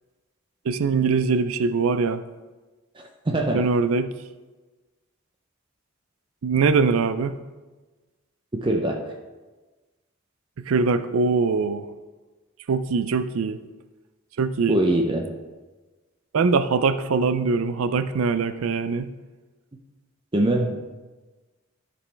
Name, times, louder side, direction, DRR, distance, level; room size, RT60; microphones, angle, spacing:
voice 1, 0.7-2.2 3.5-4.1 6.4-7.4 10.6-11.9 12.7-13.6 14.4-14.8 16.3-19.1, right 4 dB, 80° right, 12 dB, 0.4 m, -22 dB
voice 2, 3.0-3.7 8.6-9.0 14.7-15.3 20.3-20.8, right 1 dB, 25° right, 2 dB, 0.5 m, -23 dB
13.0 x 5.2 x 3.4 m, 1.2 s
head